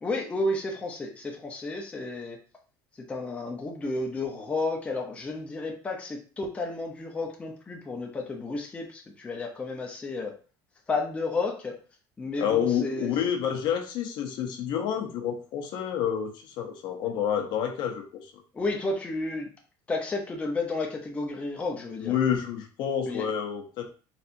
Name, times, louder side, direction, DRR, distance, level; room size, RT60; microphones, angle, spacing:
voice 1, 0.0-2.4 3.1-10.3 10.9-11.8 12.2-13.1 18.5-19.5 19.9-22.1 23.1-23.2, left 2 dB, 15° left, 0 dB, 0.7 m, -32 dB
voice 2, 12.4-18.2 22.0-23.9, left 8 dB, 55° left, 3 dB, 0.8 m, -28 dB
4.3 x 3.3 x 2.6 m, 0.37 s
cardioid pair, 150°, 9 cm